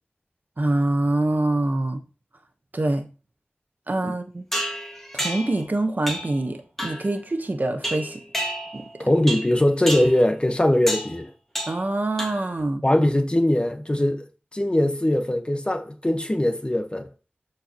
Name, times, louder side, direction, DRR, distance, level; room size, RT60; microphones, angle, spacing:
voice 1, 0.6-2.0 2.7-3.1 3.9-4.4 5.1-8.2 8.7-9.1 11.7-12.8, right 2 dB, 45° right, 1.2 m, -25 dB
sound 1, 4.5-5.6 6.1-6.4 6.8-7.1 7.8-8.9 9.3-9.6 9.9-10.2 10.9-11.2 11.6-11.9 12.2-12.6, equal, 5° left, 1.9 m, -30 dB
voice 2, 9.0-11.3 12.8-14.3 14.5-17.1, left 1 dB, 25° left, 1.3 m, -21 dB
12.5 x 4.6 x 3.1 m
wide cardioid pair, 55°, 4 cm